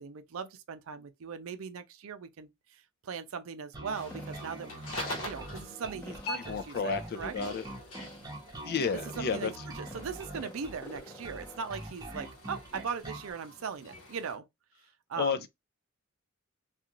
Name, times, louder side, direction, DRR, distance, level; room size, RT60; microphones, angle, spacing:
voice 1, 0.0-4.7 5.2-7.3 8.9-9.5 9.8-14.5 15.1-15.4, right 6 dB, 70° right, 0.4 m, -39 dB
Bass guitar, 3.7-13.3, right 1 dB, 20° right, 0.8 m, -44 dB
sound 1, 3.9-14.4, left 1 dB, 70° left, 0.9 m, -45 dB
sound 2, 4.1-11.8, equal, 10° left, 0.8 m, -50 dB
voice 2, 6.4-7.6 8.6-9.5 15.2-15.5, left 5 dB, 50° left, 0.4 m, -31 dB
2.4 x 2.3 x 2.8 m
head